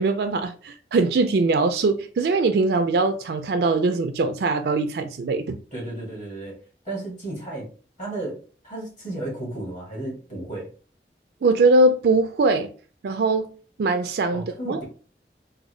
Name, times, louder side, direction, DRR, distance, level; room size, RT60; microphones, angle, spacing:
voice 1, 0.0-5.6 11.4-12.7 13.0-13.5 13.8-14.8, right 3 dB, 65° right, 0.3 m, -21 dB
voice 2, 5.7-6.6 6.8-7.7 8.0-8.4 8.6-10.7 14.3-14.8, right 2 dB, 45° left, 1.7 m, -33 dB
3.6 x 2.2 x 3.1 m
head